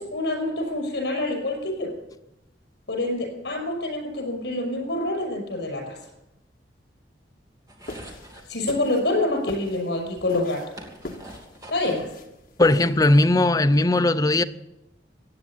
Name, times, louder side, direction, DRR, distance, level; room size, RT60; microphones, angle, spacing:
voice 1, 0.0-1.9 2.9-6.0 8.5-10.6 11.7-12.1, left 2 dB, 70° left, 6.0 m, -26 dB
sound 1, 7.7-8.5 9.7-9.8 10.2-12.1 12.4-13.5, right 1 dB, 20° right, 2.2 m, -45 dB
sound 2, 7.8-13.2, left 1 dB, 50° left, 1.7 m, -37 dB
voice 2, 12.6-14.4, left 2 dB, 20° left, 0.5 m, -18 dB
15.5 x 9.5 x 7.4 m
head